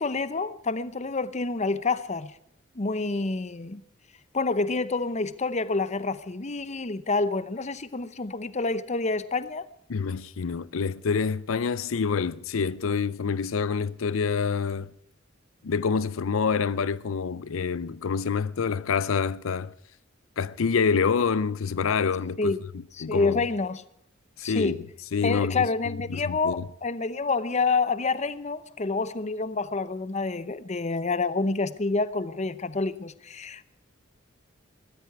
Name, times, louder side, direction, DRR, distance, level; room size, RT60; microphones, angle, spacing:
voice 1, 0.0-2.3 2.7-3.8 4.3-9.6 22.4-22.6 23.0-23.8 24.4-24.8 25.2-33.6, left 3 dB, 35° left, 0.8 m, -28 dB
voice 2, 9.9-14.9 15.6-19.7 20.4-22.6 23.0-23.4 24.4-24.8 25.1-26.6, left 5 dB, 85° left, 0.5 m, -27 dB
21.5 x 14.5 x 4.6 m
head